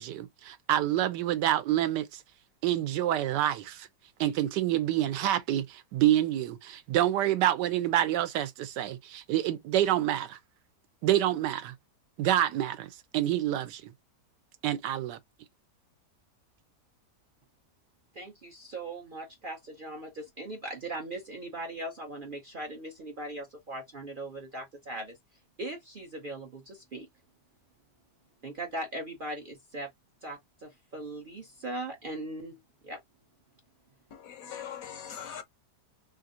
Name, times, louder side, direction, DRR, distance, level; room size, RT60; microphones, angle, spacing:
voice 1, 0.0-2.2 2.6-3.9 4.2-10.4 11.0-11.7 12.2-13.9 14.6-15.2, right 12 dB, 85° right, 1.2 m, -27 dB
voice 2, 18.1-25.2 25.6-27.1 28.4-29.9 30.2-32.6 32.8-33.0, right 1 dB, 55° right, 0.5 m, -39 dB
voice 3, 34.1-35.4, left 8 dB, 70° left, 0.9 m, -41 dB
3.2 x 2.4 x 2.7 m
omnidirectional pair, 1.8 m